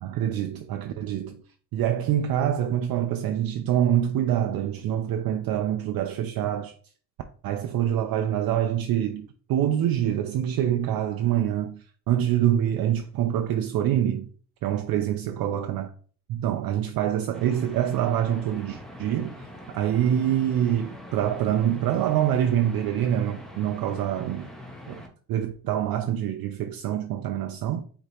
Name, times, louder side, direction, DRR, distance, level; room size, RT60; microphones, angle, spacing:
voice 1, 0.0-1.4 1.7-6.7 7.4-14.3 14.6-15.9 16.3-19.4 19.7-24.5 24.9-25.0 25.3-27.8, right 10 dB, 55° right, 0.5 m, -25 dB
sound 1, 17.3-25.1, left 1 dB, ahead, 0.6 m, -43 dB
5.0 x 2.9 x 2.9 m
cardioid pair, 115°, 45 cm